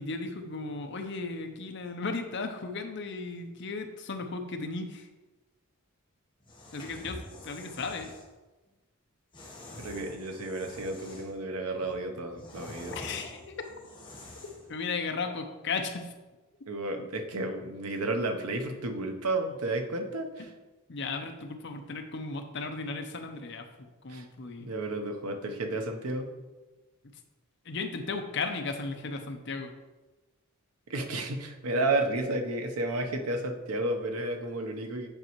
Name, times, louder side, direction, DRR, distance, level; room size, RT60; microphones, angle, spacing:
voice 1, 0.0-5.1 6.7-8.1 12.9-13.7 14.7-16.1 20.4-20.5 20.9-23.6 24.0-24.7 27.7-29.7, left 4 dB, 50° left, 6 dB, 0.7 m, -35 dB
sound 1, 6.4-8.3 9.3-11.4 11.8-14.7, left 1 dB, 20° left, 1.1 m, -46 dB
voice 2, 9.8-13.0 16.7-20.5 24.1-24.3 24.6-26.3 30.9-35.1, right 2 dB, 90° right, 5 dB, 0.9 m, -32 dB
8.8 x 5.2 x 3.1 m, 1.2 s
head